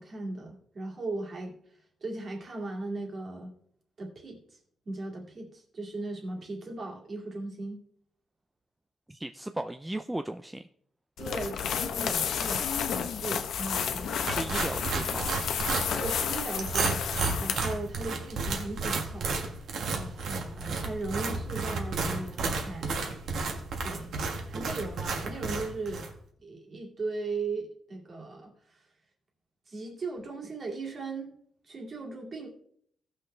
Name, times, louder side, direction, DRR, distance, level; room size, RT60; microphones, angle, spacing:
voice 1, 0.0-1.6 2.0-3.5 4.0-4.6 4.9-7.8 11.2-14.1 15.9-17.0 17.4-19.3 19.9-23.0 23.8-24.2 24.5-26.1 26.4-28.8 29.7-31.3 31.7-32.5, right 3 dB, 40° right, 0 dB, 2.2 m, -37 dB
voice 2, 9.1-10.7 14.2-15.4, right 1 dB, 10° right, 8 dB, 0.3 m, -36 dB
sound 1, 11.2-17.8, left 7 dB, 80° left, 0.9 m, -31 dB
sound 2, 14.3-26.1, right 3 dB, 70° right, 1.5 m, -32 dB
16.5 x 6.3 x 3.3 m, 0.65 s
wide cardioid pair, 160°, 0 cm